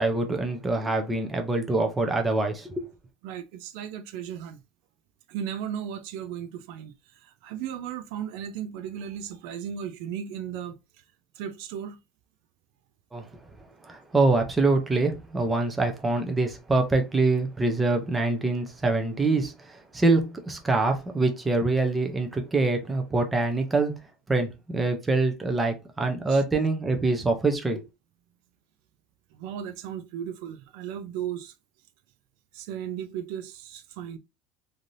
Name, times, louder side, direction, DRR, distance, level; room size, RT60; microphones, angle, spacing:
voice 1, 0.0-2.9 13.1-13.3 13.8-23.9 24.3-27.8, right 3 dB, 10° right, 0.5 m, -25 dB
voice 2, 3.2-4.6 5.3-11.0 11.3-12.0 26.3-26.4 29.3-31.5 32.5-34.2, right 9 dB, 65° right, 0.4 m, -36 dB
3.2 x 2.6 x 2.6 m
cardioid pair, 175°, 0 cm